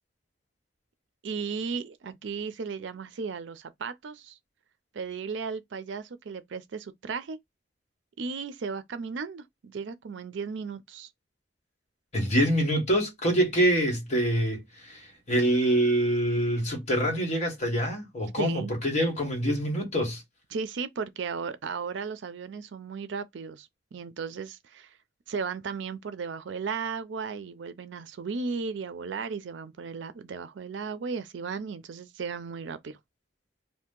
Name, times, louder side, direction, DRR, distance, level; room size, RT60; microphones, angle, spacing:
voice 1, 1.2-4.4 4.9-7.4 8.2-11.1 18.4-18.7 20.5-24.9 25.3-33.0, right 5 dB, 75° right, 0.4 m, -35 dB
voice 2, 12.1-20.2, right 1 dB, 40° left, 1.5 m, -25 dB
2.8 x 2.5 x 3.6 m
head